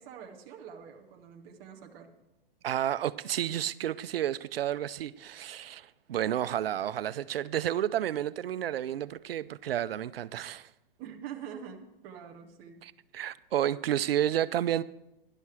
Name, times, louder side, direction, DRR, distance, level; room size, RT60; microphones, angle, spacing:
voice 1, 0.0-2.1 11.0-12.9, right 8 dB, 10° right, 0.3 m, -45 dB
voice 2, 2.6-10.7 12.8-14.8, right 11 dB, 85° right, 0.6 m, -31 dB
12.0 x 11.0 x 4.8 m
hypercardioid pair, 160°, 29 cm